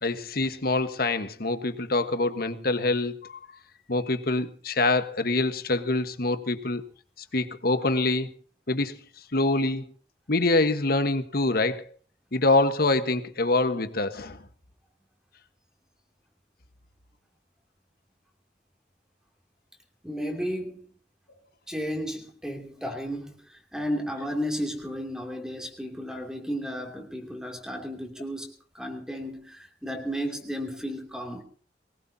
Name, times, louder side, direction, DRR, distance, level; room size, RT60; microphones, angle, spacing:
voice 1, 0.0-3.5 3.9-6.9 7.3-8.3 8.7-9.0 9.3-9.8 10.3-11.9 12.3-14.4, left 2 dB, 60° left, 1.3 m, -25 dB
voice 2, 20.0-20.9 21.7-31.4, equal, 5° right, 2.7 m, -33 dB
22.0 x 20.0 x 2.8 m
head